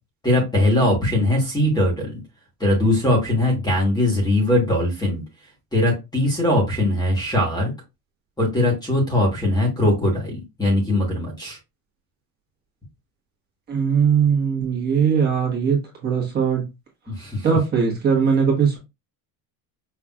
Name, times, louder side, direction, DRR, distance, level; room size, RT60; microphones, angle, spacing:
voice 1, 0.2-2.2 2.6-5.2 5.7-7.7 8.4-11.6 17.1-17.5, left 1 dB, 10° left, 1.3 m, -20 dB
voice 2, 13.7-15.8 16.0-16.6 17.4-18.8, right 6 dB, 25° right, 1.3 m, -20 dB
5.7 x 3.1 x 2.4 m
cardioid pair, 180°, 41 cm